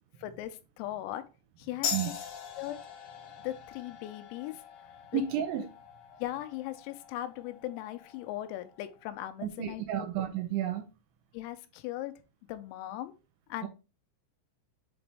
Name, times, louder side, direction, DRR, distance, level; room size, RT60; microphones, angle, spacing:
voice 1, 0.2-1.2 1.6-1.9 2.6-2.8 3.4-4.6 5.1-5.2 6.2-10.1 11.3-12.1 12.5-13.2 13.5-13.7, left 14 dB, 90° left, 3.5 m, -38 dB
sound 1, 1.8-8.9, left 7 dB, 50° left, 4.0 m, -42 dB
voice 2, 5.1-5.6 9.4-10.9 13.6-13.7, right 9 dB, 80° right, 2.8 m, -31 dB
8.2 x 4.0 x 3.4 m
omnidirectional pair, 5.9 m